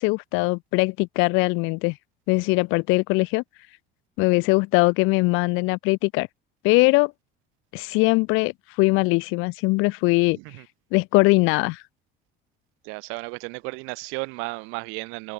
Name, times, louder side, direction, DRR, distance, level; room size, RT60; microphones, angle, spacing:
voice 1, 0.0-2.0 2.3-3.4 4.2-6.3 6.6-7.1 7.7-8.5 8.8-10.4 10.9-11.8, left 26 dB, 75° left, 0.8 m, -21 dB
voice 2, 10.3-10.6 12.8-15.3, right 31 dB, 80° right, 0.9 m, -34 dB
supercardioid pair, 90°, 21 cm